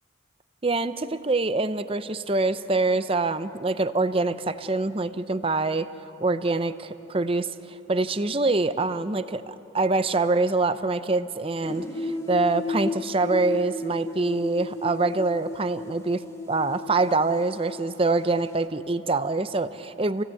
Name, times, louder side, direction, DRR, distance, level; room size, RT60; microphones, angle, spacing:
voice 1, 0.6-20.2, right 3 dB, 30° right, 12 dB, 0.6 m, -25 dB
sound 1, 11.6-18.7, left 2 dB, 15° left, 1.5 m, -34 dB
28.5 x 17.0 x 8.3 m, 3.0 s
head